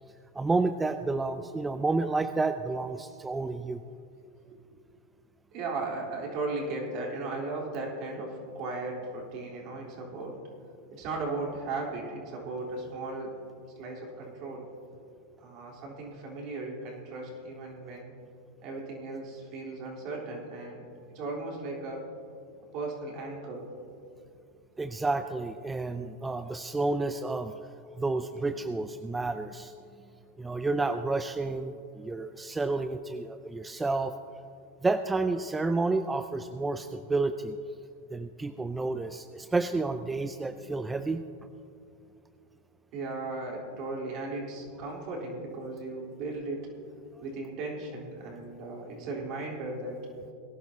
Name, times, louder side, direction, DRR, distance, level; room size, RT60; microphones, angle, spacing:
voice 1, 0.3-3.8 24.8-27.6 27.9-29.7 30.4-34.1 34.8-37.6 38.1-41.2, right 3 dB, 10° right, 9 dB, 0.4 m, -30 dB
voice 2, 5.5-10.4 10.9-13.3 13.8-14.7 15.4-18.1 18.6-20.8 21.1-22.1 22.7-23.7 42.9-46.7 47.2-50.1, right 3 dB, 50° right, -2 dB, 3.7 m, -36 dB
21.5 x 11.0 x 2.8 m, 2.5 s
hypercardioid pair, 105°, 0 cm